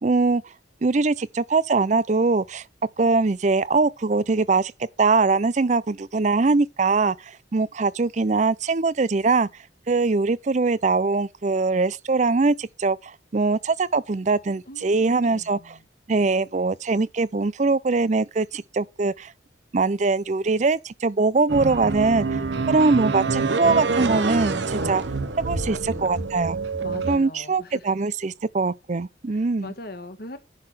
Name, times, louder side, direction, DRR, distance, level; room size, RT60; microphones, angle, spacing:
voice 1, 0.0-0.4 0.8-2.6 3.0-4.7 5.0-9.5 9.9-15.8 16.1-19.3 19.7-22.3 22.7-25.0 25.4-26.6 27.1-29.7, right 3 dB, 40° right, 0.5 m, -22 dB
voice 2, 14.7-15.8 25.5-26.4 26.8-28.0 29.3-30.4, left 2 dB, 55° left, 1.4 m, -41 dB
sound 1, 21.5-27.2, right 3 dB, 75° right, 1.0 m, -26 dB
10.5 x 3.8 x 6.1 m
head